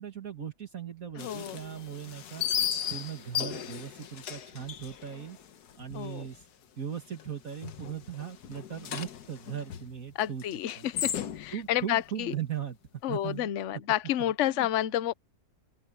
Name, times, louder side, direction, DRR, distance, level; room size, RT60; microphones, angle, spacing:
voice 1, 0.0-2.4 2.9-5.4 5.8-6.4 6.8-10.4 10.8-10.9 11.5-12.8 13.1-13.5 14.6-14.7, right 9 dB, 60° right, 2.2 m, -38 dB
sound 1, 1.2-6.1 6.3-6.4 6.9-7.3 7.6-11.7, left 9 dB, 80° left, 1.5 m, -36 dB
voice 2, 1.2-1.6 5.9-6.3 10.1-12.3 13.0-15.1, left 12 dB, 55° left, 1.0 m, -30 dB
Gong, 2.7-10.5 10.8-10.9, right 2 dB, 90° right, 5.3 m, -58 dB
open air
omnidirectional pair, 1.7 m